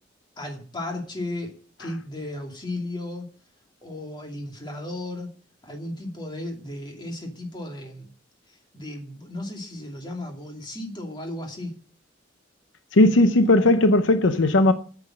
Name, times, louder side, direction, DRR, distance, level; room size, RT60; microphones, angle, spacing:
voice 1, 0.4-1.5 1.8-3.3 3.8-5.3 5.6-8.1 8.7-11.7, left 1 dB, 25° left, 2.7 m, -34 dB
voice 2, 12.9-14.7, left 2 dB, 80° left, 0.8 m, -17 dB
8.5 x 7.2 x 7.6 m
head